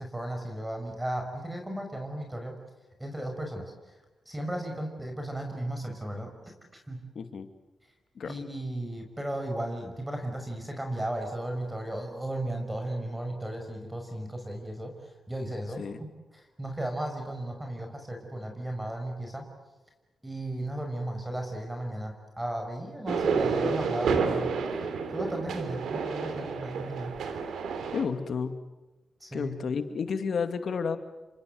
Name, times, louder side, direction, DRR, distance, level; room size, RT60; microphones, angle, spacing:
voice 1, 0.0-2.6 3.0-3.7 4.3-6.3 6.9-7.0 8.3-14.9 15.3-16.1 16.3-19.5 20.2-24.5 25.1-27.1 29.2-29.6, right 1 dB, 15° right, 4 dB, 5.8 m, -35 dB
voice 2, 7.1-7.5 8.2-8.3 15.8-16.0 27.9-28.5 29.3-31.0, left 5 dB, 65° left, 9 dB, 2.3 m, -31 dB
sound 1, 23.1-28.0, right 5 dB, 90° right, 3.0 m, -30 dB
29.5 x 25.5 x 7.8 m, 1.1 s
cardioid pair, 75°, 0 cm